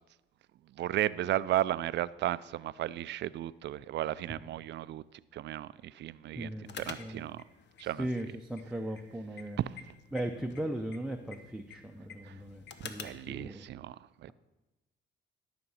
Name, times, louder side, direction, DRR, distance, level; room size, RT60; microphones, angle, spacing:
voice 1, 0.8-5.0 5.3-6.5 6.8-7.4 7.8-8.1 9.6-9.7 12.3-12.4 13.0-14.0 14.2-14.3, right 13 dB, 65° right, 0.4 m, -34 dB
voice 2, 6.4-7.3 7.8-9.6 10.1-13.7, right 1 dB, 5° right, 0.6 m, -38 dB
sound 1, 6.6-13.3, left 6 dB, 65° left, 0.9 m, -49 dB
12.5 x 5.9 x 5.6 m
cardioid pair, 90°, 20 cm